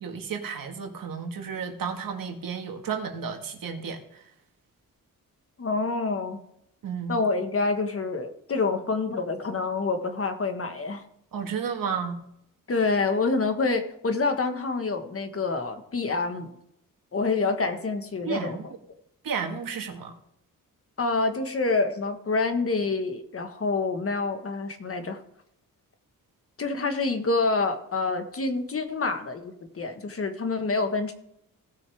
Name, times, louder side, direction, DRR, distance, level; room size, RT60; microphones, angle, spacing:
voice 1, 0.0-4.0 6.8-7.2 11.3-12.2 18.3-18.6 19.2-20.1, right 6 dB, 80° right, 1.8 m, -32 dB
voice 2, 5.6-6.4 7.1-11.0 12.7-16.5 17.1-18.7 21.0-25.2 26.6-31.1, left 3 dB, 40° left, 1.5 m, -27 dB
17.5 x 6.4 x 3.5 m
cardioid pair, 105°, 33 cm